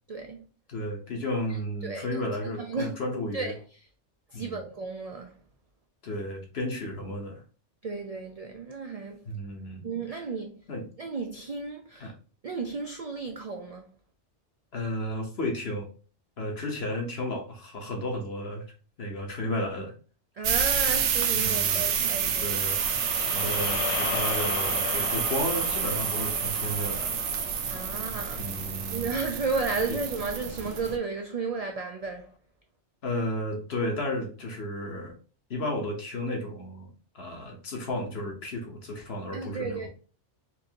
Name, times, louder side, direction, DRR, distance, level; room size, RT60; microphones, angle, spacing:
voice 1, 0.1-0.5 1.8-2.2 2.6-2.9 3.3-3.5 4.3-5.3 7.8-9.2 9.8-10.6 11.0-12.1 12.4-13.9 20.4-22.6 23.4-23.5 27.7-28.5 28.9-32.3 39.3-39.9, right 4 dB, 60° right, 0.3 m, -33 dB
voice 2, 0.7-3.5 4.3-4.6 6.0-7.4 9.3-9.9 10.7-10.8 12.0-12.1 14.7-15.9 16.4-18.6 19.0-19.9 21.3-21.9 22.4-22.8 23.3-27.2 28.4-29.1 29.9-30.0 33.0-35.1 35.5-36.9 37.1-39.9, left 1 dB, 60° left, 1.3 m, -33 dB
sound 1, 20.4-31.0, right 7 dB, 80° right, 0.9 m, -29 dB
sound 2, 22.0-30.3, left 7 dB, 80° left, 0.9 m, -37 dB
4.5 x 2.6 x 2.8 m
omnidirectional pair, 1.2 m